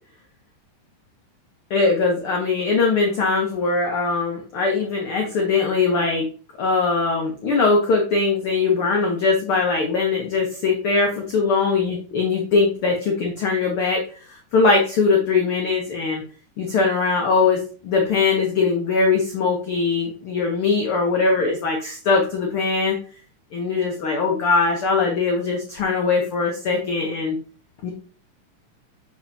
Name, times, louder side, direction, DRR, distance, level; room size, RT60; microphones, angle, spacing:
voice 1, 1.7-6.3 6.6-14.0 14.5-16.2 16.6-23.0 23.5-27.4 27.8-27.9, left 4 dB, 70° left, 1 dB, 1.3 m, -21 dB
7.1 x 5.8 x 2.7 m, 0.40 s
omnidirectional pair, 3.9 m